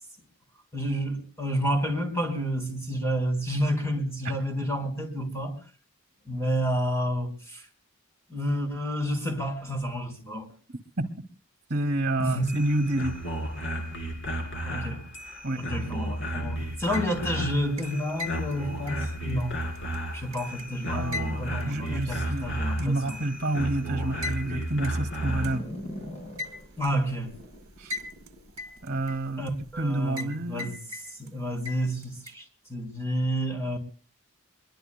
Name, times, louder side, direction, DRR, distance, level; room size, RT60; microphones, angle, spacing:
voice 1, 0.7-5.6 6.3-7.6 8.3-10.5 12.2-12.4 14.6-15.0 15.6-19.6 20.1-23.2 26.8-27.3 29.4-30.8 31.2-32.4 32.7-33.8, equal, 10° left, 4.1 m, -30 dB
voice 2, 11.7-13.2 15.4-15.6 20.9-22.5 22.8-25.7 27.8-28.0 28.8-29.4 29.8-30.7, right 1 dB, 45° right, 2.1 m, -29 dB
sound 1, 12.3-25.6, right 1 dB, 55° left, 3.8 m, -33 dB
sound 2, 16.7-17.4 17.8-20.6 21.1-22.4 22.8-22.9 24.2-24.4 24.8-24.9 25.4-25.5 26.4-26.9 27.9-28.3 28.6-29.5 30.2-30.3 30.6-31.3 31.6-32.3, left 3 dB, 65° right, 1.2 m, -38 dB
sound 3, 25.1-29.8, left 1 dB, 30° left, 8.0 m, -42 dB
25.5 x 22.5 x 2.2 m
head